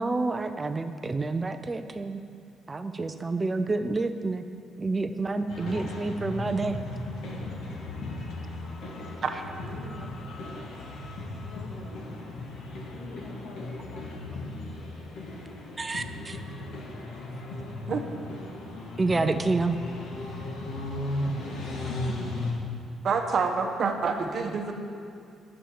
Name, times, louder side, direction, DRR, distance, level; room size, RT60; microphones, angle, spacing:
voice 1, 0.0-2.2 2.7-4.5 4.8-6.8 10.5-10.6 15.8-16.4 19.0-19.8, right 3 dB, 20° right, 9 dB, 0.4 m, -28 dB
sound 1, 5.5-22.5, left 2 dB, 65° left, 1.5 m, -36 dB
voice 2, 8.9-10.2 11.4-12.1 12.7-14.3, left 3 dB, 85° left, -1 dB, 1.9 m, -46 dB
voice 3, 23.0-24.7, right 5 dB, 40° right, 4 dB, 0.9 m, -27 dB
10.5 x 7.1 x 7.1 m, 2.4 s
cardioid pair, 160°, 0 cm